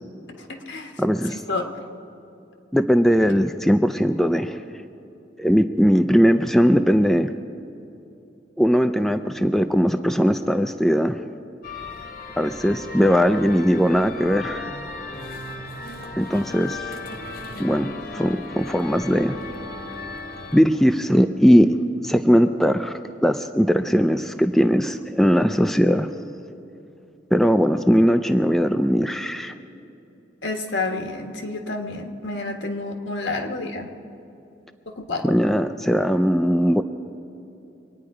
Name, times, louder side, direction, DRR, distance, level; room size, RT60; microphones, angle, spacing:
voice 1, 0.4-1.0 1.5-1.9 30.4-33.9 34.9-35.3, left 3 dB, 75° left, 3 dB, 1.6 m, -29 dB
voice 2, 1.0-1.4 2.7-4.6 5.4-7.3 8.6-11.2 12.4-14.8 16.2-16.9 17.6-19.4 20.5-21.7 22.0-26.1 27.3-29.5 35.2-36.8, equal, ahead, 8 dB, 0.4 m, -19 dB
sound 1, 11.6-20.6, left 3 dB, 50° left, 1.2 m, -36 dB
25.0 x 9.7 x 4.9 m, 2.8 s
head